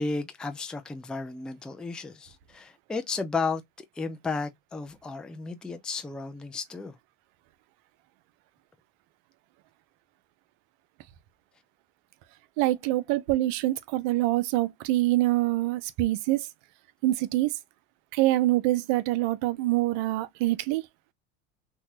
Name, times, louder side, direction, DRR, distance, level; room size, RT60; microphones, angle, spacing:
voice 1, 0.0-7.0, left 4 dB, 5° left, 0.3 m, -33 dB
voice 2, 12.6-16.5 17.0-17.5 18.1-20.8, right 17 dB, 65° right, 0.6 m, -25 dB
3.1 x 2.2 x 2.8 m
hypercardioid pair, 85°, 34 cm